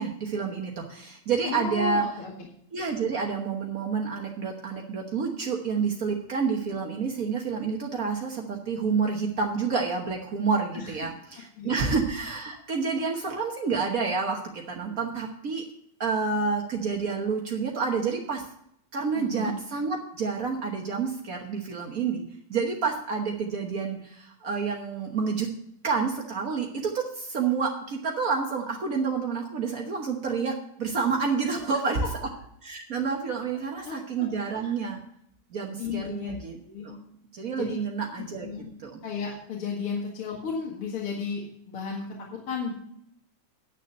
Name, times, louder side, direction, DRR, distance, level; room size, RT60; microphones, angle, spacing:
voice 1, 0.0-2.0 2.7-15.6 16.0-18.4 18.9-22.2 22.5-25.5 25.8-30.5 30.8-32.0 32.6-35.0 35.5-36.6 36.8-37.0 37.3-38.5 38.8-39.0, right 5 dB, 80° right, 0 dB, 0.7 m, -29 dB
voice 2, 1.4-2.5 10.7-11.1 11.6-11.8 12.7-12.8 19.1-19.5 31.4-32.1 33.8-34.6 35.8-37.0 37.6-37.8 38.2-38.7 39.0-42.1 42.5-42.7, left 5 dB, 50° left, -3 dB, 2.5 m, -34 dB
10.5 x 6.7 x 6.5 m, 0.70 s
omnidirectional pair, 3.4 m